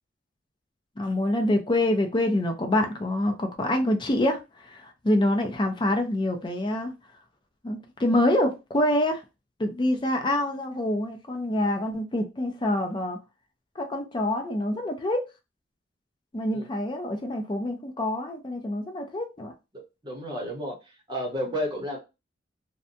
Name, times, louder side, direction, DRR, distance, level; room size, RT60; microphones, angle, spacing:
voice 1, 1.0-6.9 7.6-9.2 9.6-13.2 13.8-15.2 16.3-19.5, left 1 dB, 25° left, 0.5 m, -26 dB
voice 2, 20.0-22.0, equal, 25° right, 0.9 m, -32 dB
2.6 x 2.2 x 2.6 m
head